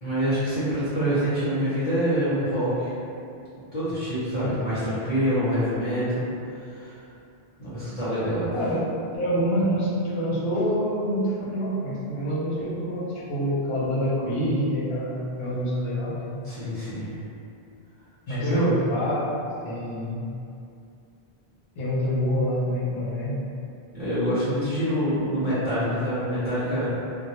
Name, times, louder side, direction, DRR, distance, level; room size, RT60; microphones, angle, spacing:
voice 1, 0.0-2.9 3.6-6.3 6.7-6.9 7.6-8.5 16.4-17.1 18.3-18.7 23.9-27.0, equal, 40° left, -13 dB, 0.8 m, -26 dB
voice 2, 9.1-16.5 18.3-19.2 19.6-20.3 21.8-23.4, equal, 75° left, -7 dB, 0.9 m, -26 dB
2.1 x 2.1 x 2.9 m, 2.6 s
omnidirectional pair, 1.1 m